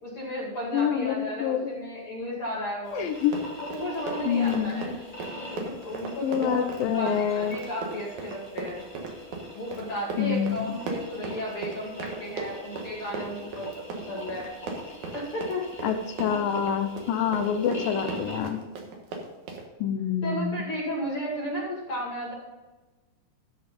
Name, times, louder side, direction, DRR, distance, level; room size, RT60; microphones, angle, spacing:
voice 1, 0.0-3.1 3.6-4.9 5.5-6.7 6.9-8.8 9.5-14.5 15.1-15.9 20.2-22.3, equal, 40° left, -5 dB, 2.6 m, -34 dB
voice 2, 0.7-1.7 2.9-3.4 4.3-5.0 6.2-7.6 10.2-10.8 15.8-18.6 19.8-20.6, left 8 dB, 80° left, 8 dB, 2.3 m, -27 dB
sound 1, 2.8-18.4, left 1 dB, 15° left, 1.4 m, -43 dB
Run, 3.2-19.7, right 3 dB, 60° right, 2.6 m, -37 dB
13.0 x 5.3 x 5.3 m, 1.2 s
omnidirectional pair, 4.2 m